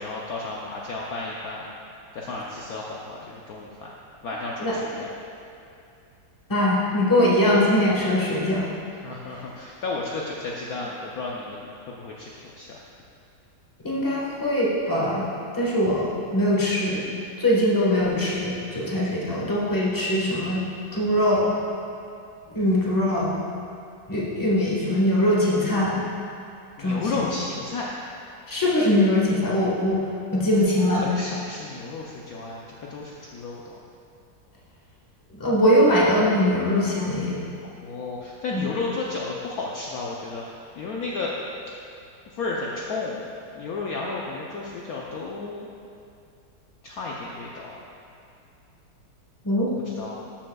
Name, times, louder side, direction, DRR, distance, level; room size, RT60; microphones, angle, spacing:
voice 1, 0.0-1.7 2.1-3.9 4.2-5.1 9.0-12.8 26.8-28.0 30.9-33.8 37.6-40.4 40.8-41.3 42.4-43.2 43.5-45.7 46.8-47.8 49.9-50.2, left 3 dB, 65° left, -3 dB, 1.0 m, -33 dB
voice 2, 6.5-8.7 13.8-15.3 15.5-17.1 17.4-20.6 20.9-21.5 22.5-23.4 24.1-26.0 26.8-27.1 28.5-30.0 30.3-31.0 35.4-37.4 38.5-38.6 49.4-49.7, left 1 dB, 10° left, -5 dB, 1.2 m, -22 dB
12.5 x 7.7 x 2.3 m, 2.6 s
omnidirectional pair, 2.0 m